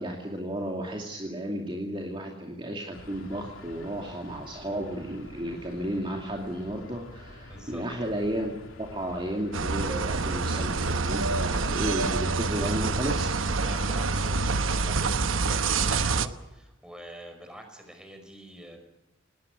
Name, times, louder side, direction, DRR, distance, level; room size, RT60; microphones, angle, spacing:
voice 1, 0.0-8.5 8.8-13.5, right 1 dB, 25° right, 0 dB, 2.6 m, -33 dB
sound 1, 2.9-14.9, left 1 dB, 85° left, 3.2 m, -47 dB
voice 2, 7.5-7.9 13.6-18.8, equal, 5° right, 5 dB, 5.2 m, -45 dB
sound 2, 9.5-16.3, right 4 dB, 80° right, 1.0 m, -27 dB
19.5 x 19.5 x 9.7 m, 0.99 s
head